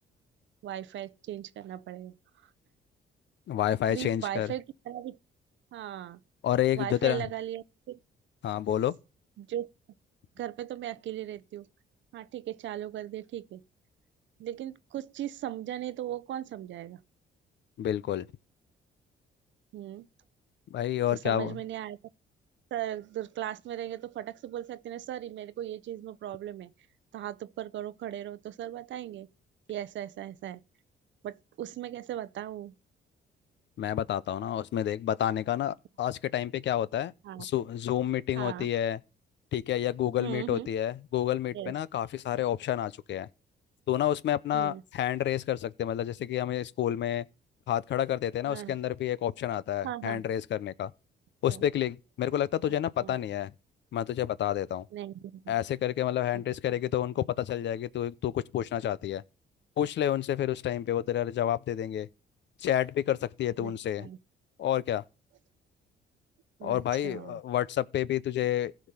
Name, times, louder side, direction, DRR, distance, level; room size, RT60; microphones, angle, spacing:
voice 1, 0.6-2.1 3.9-5.2 5.7-6.2 6.8-8.0 9.4-9.7 10.4-11.7 12.1-13.6 14.4-17.0 19.7-20.1 21.1-22.0 22.7-26.7 27.1-29.3 29.7-30.6 31.2-32.7 37.2-37.4 38.4-38.7 40.2-40.7 41.5-41.7 44.5-44.8 48.5-48.7 49.8-50.2 51.5-51.6 53.0-53.1 54.9-55.5 56.3-56.4 63.6-63.7 64.0-64.2 66.6-67.4, right 12 dB, 70° right, 0.7 m, -38 dB
voice 2, 3.5-4.5 6.4-7.2 8.4-8.9 17.8-18.3 20.7-21.5 33.8-37.1 37.4-39.0 39.5-43.3 43.9-47.3 47.7-50.9 51.4-53.5 53.9-54.8 55.5-59.2 59.8-62.1 62.6-64.1 64.6-65.0 66.6-68.7, left 11 dB, 65° left, 0.6 m, -29 dB
15.0 x 5.1 x 5.6 m
cardioid pair, 90°, 20 cm